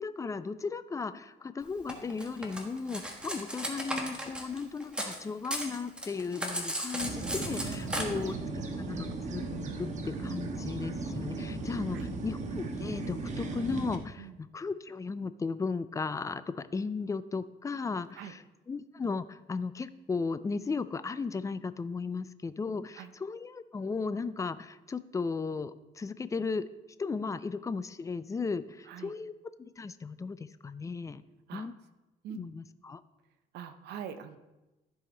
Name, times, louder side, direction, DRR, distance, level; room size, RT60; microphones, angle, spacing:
voice 1, 0.0-9.4 9.8-18.4 18.7-26.6 27.0-29.3 29.6-31.2 31.5-31.7 32.3-33.0, left 4 dB, 20° left, 14 dB, 0.4 m, -36 dB
Cutlery silverware, 1.9-5.2 5.4-8.0, equal, 5° right, 1.5 m, -36 dB
sound 1, 7.0-14.0, right 3 dB, 45° right, 1.3 m, -36 dB
voice 2, 33.5-34.4, right 9 dB, 80° right, 9 dB, 0.7 m, -43 dB
14.5 x 4.9 x 3.9 m, 1.1 s
cardioid pair, 110°, 17 cm